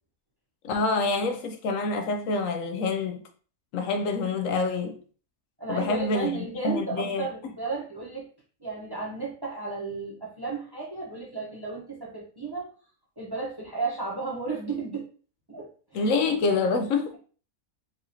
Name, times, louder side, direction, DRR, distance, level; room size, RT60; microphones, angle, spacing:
voice 1, 0.6-3.2 3.7-5.0 5.7-6.3 6.6-7.5 15.9-17.2, left 3 dB, 70° left, 0.9 m, -27 dB
voice 2, 5.6-8.3 8.6-12.7 13.2-15.1 15.5-16.1, right 4 dB, 20° right, 0.9 m, -33 dB
4.6 x 2.7 x 2.9 m
omnidirectional pair, 1.5 m